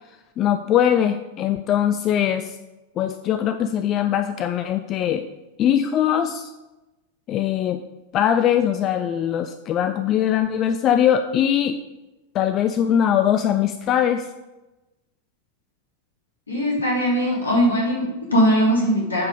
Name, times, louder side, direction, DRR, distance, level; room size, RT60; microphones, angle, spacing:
voice 1, 0.4-2.5 3.0-5.3 5.6-6.5 7.3-7.8 8.1-11.8 12.3-14.3, left 10 dB, 35° left, 9 dB, 0.4 m, -21 dB
voice 2, 16.5-19.3, equal, 75° left, -3 dB, 2.8 m, -20 dB
9.3 x 5.2 x 5.0 m, 1.0 s
figure-of-eight pair, 90°, 0 cm